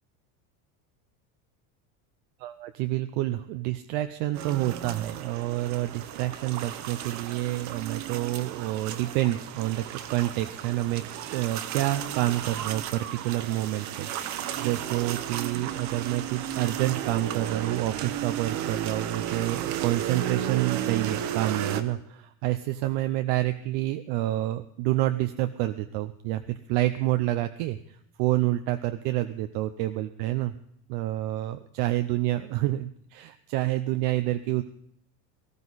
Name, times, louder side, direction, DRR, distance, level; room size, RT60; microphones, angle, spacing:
voice 1, 2.4-11.0 11.3-27.8 28.2-30.5 30.9-34.6, right 15 dB, 60° right, 9 dB, 0.8 m, -28 dB
sound 1, 4.3-21.8, right 10 dB, 45° right, 1.2 m, -34 dB
19.0 x 14.0 x 4.1 m, 0.69 s
cardioid pair, 160°, 42 cm